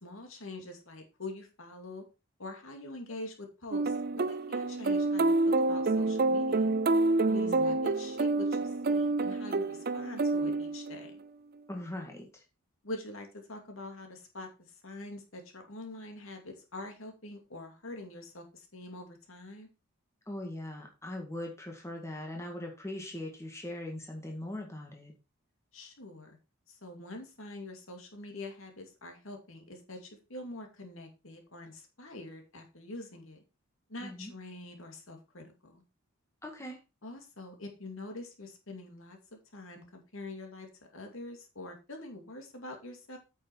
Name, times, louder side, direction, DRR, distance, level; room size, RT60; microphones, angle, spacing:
voice 1, 0.0-2.0 2.4-6.8 7.3-11.1 12.8-19.7 25.7-26.4 26.7-33.4 33.9-35.8 37.0-43.2, left 2 dB, 70° left, 4 dB, 2.5 m, -45 dB
sound 1, 3.7-11.2, right 3 dB, 45° right, 0.5 m, -28 dB
voice 2, 7.3-7.8 11.7-12.4 20.3-25.1 34.0-34.3 36.4-36.8, left 1 dB, 15° left, 1 dB, 1.9 m, -40 dB
8.8 x 6.4 x 4.6 m, 0.29 s
head